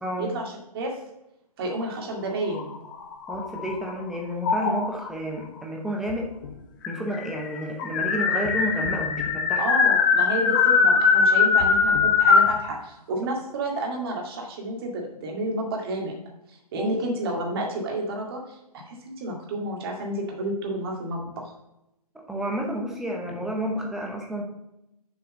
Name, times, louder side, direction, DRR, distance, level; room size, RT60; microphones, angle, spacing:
voice 1, 0.2-1.0 1.6-2.8 9.6-16.1 16.5-21.5, right 1 dB, 35° right, 1 dB, 2.1 m, -30 dB
sound 1, 2.4-3.9 4.4-5.1 6.1-6.2 6.4-6.5 6.8-12.6, left 5 dB, 30° left, 1.1 m, -21 dB
voice 2, 3.3-6.3 6.9-9.6 16.8-17.0 22.3-24.4, equal, ahead, 0 dB, 0.8 m, -30 dB
7.0 x 4.5 x 6.4 m, 0.86 s
hypercardioid pair, 160°, 20 cm